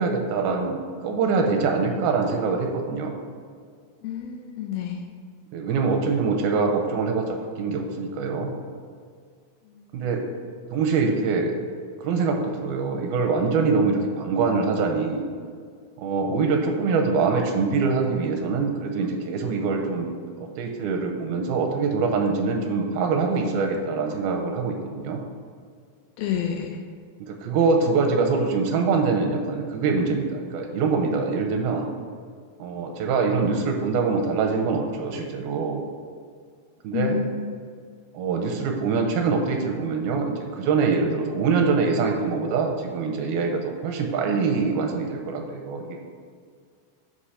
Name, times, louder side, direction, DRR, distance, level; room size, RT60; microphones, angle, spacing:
voice 1, 0.0-3.1 5.5-8.5 9.9-10.2 10.7-11.6 12.0-15.2 16.0-20.1 20.4-25.2 27.2-31.9 32.6-35.8 36.8-37.2 38.1-46.0, right 4 dB, 85° right, 2 dB, 2.4 m, -24 dB
voice 2, 4.0-5.1 9.6-10.3 26.2-26.8 36.9-37.5, left 7 dB, 80° left, 3 dB, 2.2 m, -30 dB
8.1 x 3.0 x 5.5 m, 2.1 s
omnidirectional pair, 4.4 m